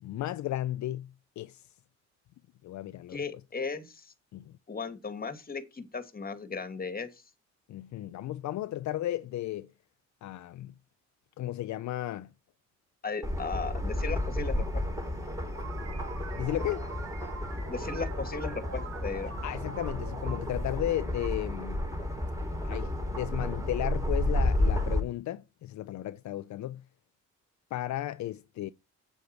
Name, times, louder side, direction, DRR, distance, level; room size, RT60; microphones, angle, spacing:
voice 1, 0.0-1.1 1.4-1.6 2.6-3.2 4.3-4.5 7.7-9.7 10.2-10.7 11.4-12.3 16.3-16.8 19.4-21.9 22.6-26.8 27.7-28.7, left 14 dB, 65° left, 0.6 m, -34 dB
voice 2, 3.1-4.1 4.7-7.2 13.0-14.8 17.7-19.4, left 4 dB, 30° left, 2.1 m, -36 dB
sound 1, 13.2-25.0, left 1 dB, 10° right, 4.4 m, -32 dB
sound 2, 15.5-21.8, right 6 dB, 55° right, 2.1 m, -46 dB
8.7 x 7.9 x 4.6 m
cardioid pair, 90°, 30 cm